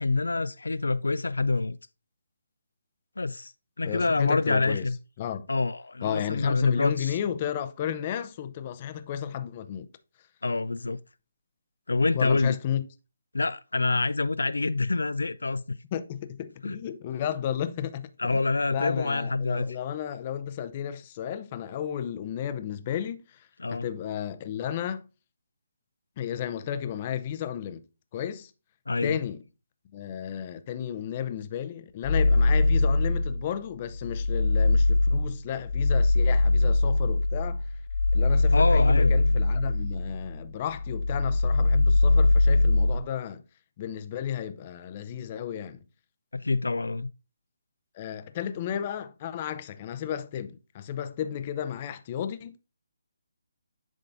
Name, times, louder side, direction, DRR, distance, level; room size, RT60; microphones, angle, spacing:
voice 1, 0.0-1.8 3.2-3.5 3.8-5.0 5.5-7.2 10.4-11.0 11.9-12.6 13.3-15.8 16.6-16.8 18.2-19.8 23.6-23.9 28.9-29.2 38.5-39.2 46.3-47.1, left 3 dB, 90° left, 0.3 m, -26 dB
voice 2, 3.9-4.8 5.2-5.4 6.0-9.9 12.1-12.8 15.9-18.4 18.7-25.0 26.2-27.8 28.1-28.5 29.0-29.4 29.9-37.6 38.1-43.4 43.8-45.8 47.9-52.6, left 9 dB, 30° left, 0.6 m, -33 dB
sound 1, 32.0-33.5 33.9-40.4 40.7-43.0, left 2 dB, 15° left, 1.1 m, -22 dB
10.5 x 3.7 x 2.6 m
hypercardioid pair, 155°, 0 cm